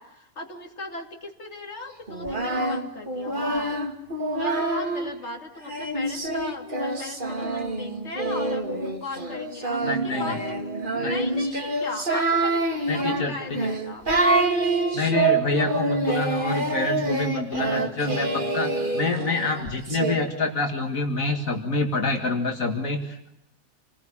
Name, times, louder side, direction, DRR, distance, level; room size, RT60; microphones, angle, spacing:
voice 1, 0.0-3.8 4.4-10.7 11.0-14.1, left 2 dB, 55° left, 2 dB, 3.0 m, -38 dB
Singing, 2.1-5.1 5.7-20.1, right 2 dB, 35° right, 2.7 m, -26 dB
voice 2, 9.8-10.4 11.0-11.1 12.9-13.6 14.9-23.3, left 3 dB, 75° left, 3 dB, 2.4 m, -27 dB
28.0 x 20.0 x 8.7 m, 0.82 s
omnidirectional pair, 1.4 m